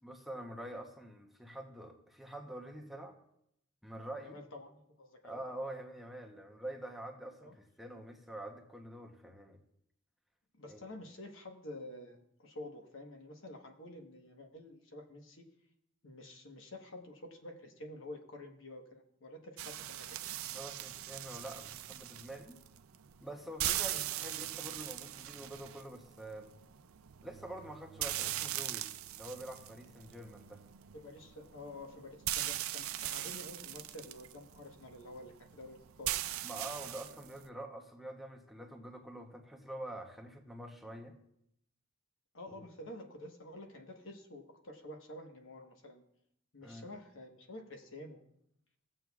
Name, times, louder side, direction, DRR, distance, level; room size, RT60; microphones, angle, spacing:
voice 1, 0.0-3.2 3.8-4.4 5.2-9.6 10.7-10.8 20.5-22.6 23.2-26.5 27.2-28.9 29.2-30.6 36.4-41.2 42.5-42.7 46.6-46.9, right 1 dB, ahead, 1 dB, 0.8 m, -46 dB
voice 2, 4.2-5.4 7.4-7.5 10.5-15.4 16.0-20.2 23.9-24.0 30.9-36.1 42.3-46.0 46.5-48.2, left 1 dB, 65° left, 4 dB, 1.2 m, -49 dB
sound 1, 19.6-37.5, right 13 dB, 80° right, 0.5 m, -41 dB
17.5 x 7.6 x 2.3 m, 0.76 s
head